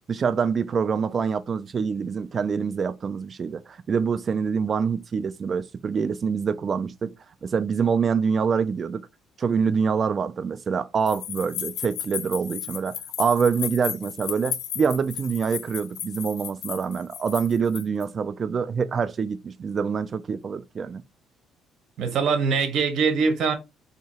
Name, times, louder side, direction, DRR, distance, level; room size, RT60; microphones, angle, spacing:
voice 1, 0.1-7.1 7.4-9.0 9.4-21.0, right 6 dB, 30° right, 0.3 m, -25 dB
sound 1, 11.1-18.0, left 9 dB, 80° left, 0.6 m, -34 dB
voice 2, 22.0-23.5, right 5 dB, 60° right, 1.0 m, -22 dB
2.9 x 2.7 x 4.2 m
cardioid pair, 145°, 0 cm